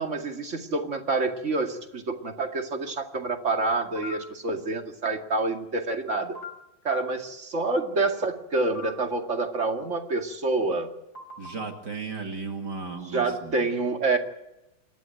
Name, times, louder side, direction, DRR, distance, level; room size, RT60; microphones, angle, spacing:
voice 1, 0.0-6.4 6.8-10.9 13.1-14.2, right 3 dB, 35° right, 4 dB, 2.4 m, -27 dB
sound 1, 4.0-4.2 6.4-6.5 8.8-8.9 11.2-11.7, left 4 dB, 45° left, 6.1 m, -38 dB
voice 2, 11.4-13.7, right 4 dB, 55° right, 2 dB, 2.7 m, -35 dB
28.0 x 12.5 x 9.0 m, 0.92 s
omnidirectional pair, 2.3 m